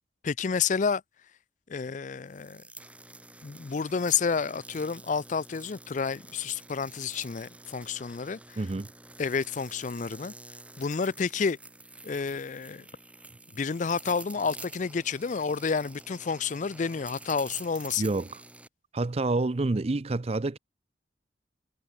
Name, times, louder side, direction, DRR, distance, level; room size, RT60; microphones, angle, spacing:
voice 1, 0.2-1.0 1.7-2.6 3.4-8.6 9.2-10.3 10.8-11.6 12.0-12.8 13.5-18.1, left 5 dB, 45° left, 0.4 m, -30 dB
sound 1, 2.3-18.7, right 2 dB, 5° right, 4.7 m, -48 dB
voice 2, 8.6-8.9 18.0-18.4 18.9-20.6, right 2 dB, 35° right, 0.5 m, -28 dB
head